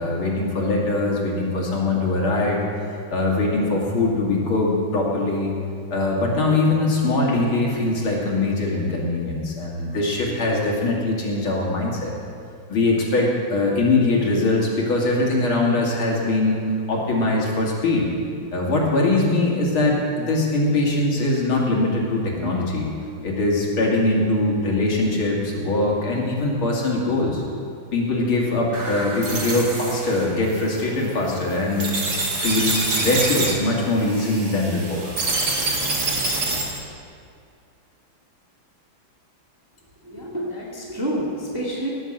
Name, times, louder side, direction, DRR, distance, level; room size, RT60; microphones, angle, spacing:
voice 1, 0.0-2.6 3.1-5.5 5.9-12.1 12.7-16.6 16.9-18.1 18.5-22.9 23.2-27.4 27.9-35.1, left 2 dB, 85° left, -2 dB, 3.3 m, -22 dB
sound 1, 28.7-36.8, right 2 dB, 50° right, 2.5 m, -26 dB
voice 2, 40.0-41.9, right 1 dB, 10° right, -5 dB, 1.9 m, -28 dB
18.5 x 7.2 x 7.8 m, 2.4 s
omnidirectional pair, 2.2 m